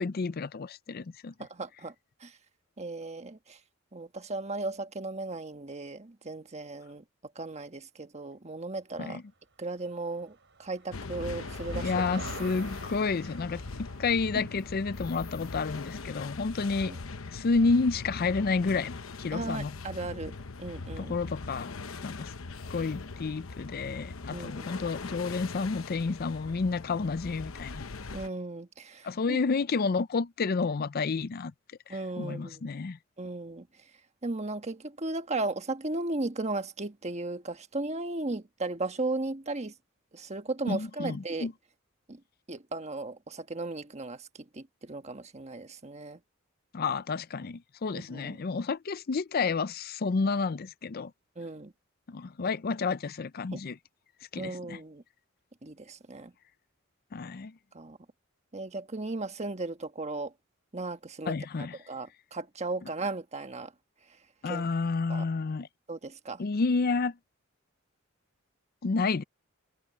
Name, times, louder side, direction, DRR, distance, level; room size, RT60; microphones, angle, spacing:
voice 1, 0.0-1.3 9.0-9.2 11.7-16.9 17.3-19.7 21.0-21.7 22.0-22.3 22.7-27.9 29.0-31.5 31.9-33.0 40.7-41.5 46.7-51.1 52.1-53.8 54.3-54.8 57.1-57.5 61.3-61.8 64.4-65.7 66.4-67.2 68.8-69.2, left 4 dB, 45° left, 0.5 m, -30 dB
voice 2, 1.4-1.9 2.2-2.4 2.8-3.6 3.9-7.0 7.3-9.2 9.6-12.0 16.8-17.0 19.3-21.2 24.3-24.7 28.1-29.4 31.9-32.6 33.2-33.7 34.2-39.7 40.1-41.5 42.1-42.2 42.5-46.2 47.9-48.4 51.4-51.7 53.5-53.6 54.4-55.0 55.6-56.3 57.7-58.0 58.5-60.3 60.7-61.3 61.9-63.7 64.4-64.6 65.1-65.3 65.9-66.4, right 2 dB, 35° right, 1.4 m, -36 dB
Motor vehicle (road), 10.0-17.8, right 3 dB, 60° right, 6.2 m, -48 dB
sound 1, 10.9-28.3, left 3 dB, 85° left, 0.9 m, -41 dB
head